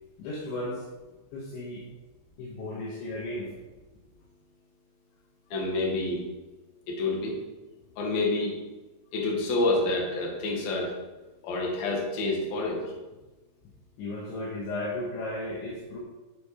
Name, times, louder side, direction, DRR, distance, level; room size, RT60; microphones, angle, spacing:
voice 1, 0.2-0.9 1.3-1.9 2.4-3.5 14.0-16.0, left 1 dB, 75° left, -3 dB, 3.5 m, -35 dB
voice 2, 5.5-6.2 6.9-7.4 8.0-8.5 9.1-10.9 11.4-12.9, left 2 dB, 55° left, -2 dB, 3.2 m, -28 dB
8.0 x 7.4 x 4.9 m, 1.1 s
omnidirectional pair, 5.7 m